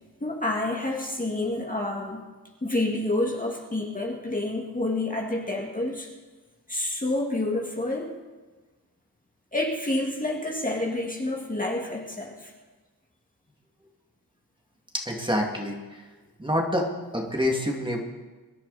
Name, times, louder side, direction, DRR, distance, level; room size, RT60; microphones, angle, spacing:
voice 1, 0.2-2.2 2.6-6.1 6.7-8.1 9.5-12.5, left 2 dB, 20° left, -1 dB, 1.9 m, -28 dB
voice 2, 14.9-16.0 16.4-18.0, equal, 10° right, 0 dB, 2.3 m, -27 dB
23.0 x 11.0 x 4.1 m, 1.3 s
wide cardioid pair, 100°, 39 cm